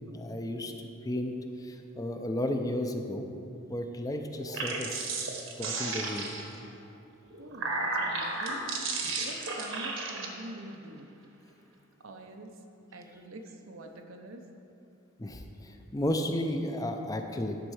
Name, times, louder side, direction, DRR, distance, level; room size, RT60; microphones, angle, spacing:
voice 1, 0.1-1.3 1.6-3.3 3.7-5.1 5.6-6.3 15.2-17.7, left 1 dB, 20° left, 5 dB, 0.5 m, -33 dB
sound 1, 4.4-6.6 7.3-10.3, right 3 dB, 70° right, 1.2 m, -33 dB
voice 2, 7.4-11.1 12.0-12.6 12.9-14.5, right 1 dB, 90° right, 4 dB, 0.8 m, -46 dB
10.5 x 4.4 x 6.4 m, 2.7 s
head